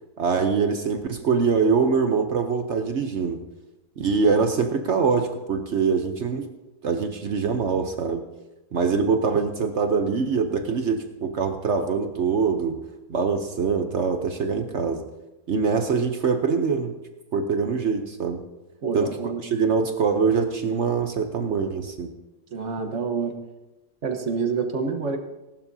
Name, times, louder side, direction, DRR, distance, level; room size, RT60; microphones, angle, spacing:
voice 1, 0.2-3.4 4.0-6.5 6.8-8.2 8.7-12.8 13.1-15.0 15.5-17.0 17.3-18.4 18.9-19.1 19.4-22.1, right 5 dB, 60° right, 7 dB, 0.7 m, -23 dB
voice 2, 18.8-19.4 22.5-23.4 24.0-25.2, right 5 dB, 45° right, 5 dB, 1.3 m, -27 dB
18.5 x 12.0 x 2.7 m, 1.0 s
omnidirectional pair, 2.0 m